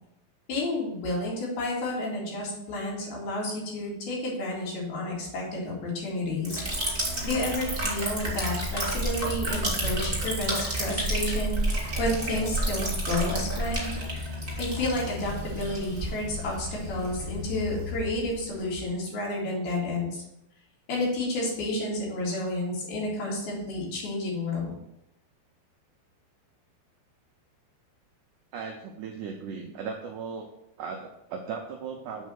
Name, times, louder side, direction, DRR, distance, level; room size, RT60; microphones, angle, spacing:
voice 1, 0.5-6.7 7.2-11.6 12.0-13.9 14.6-20.2 20.9-24.7, left 1 dB, 70° left, -5 dB, 4.3 m, -30 dB
Liquid, 6.4-18.9, right 1 dB, 20° right, 1.5 m, -31 dB
voice 2, 28.5-30.5 30.8-32.3, right 5 dB, 85° right, 2 dB, 1.8 m, -37 dB
7.6 x 4.1 x 6.4 m, 0.84 s
omnidirectional pair, 4.6 m